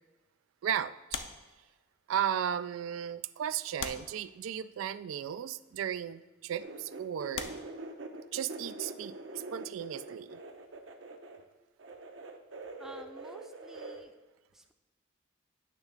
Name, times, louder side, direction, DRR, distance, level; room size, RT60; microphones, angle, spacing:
voice 1, 0.6-1.2 2.1-7.5 8.3-10.4, right 9 dB, 90° right, 14 dB, 0.3 m, -35 dB
sound 1, 1.1-2.2 2.9-3.0 3.8-4.9 5.8-6.0 6.7-6.8 7.3-8.5 10.4-12.2 12.5-12.7, left 6 dB, 65° left, 0.6 m, -43 dB
sound 2, 6.6-11.4 11.8-14.0, right 2 dB, 70° right, 0.8 m, -44 dB
voice 2, 12.8-14.1 14.5-14.7, right 1 dB, ahead, 5 dB, 0.5 m, -51 dB
9.1 x 3.5 x 6.5 m, 1.1 s
head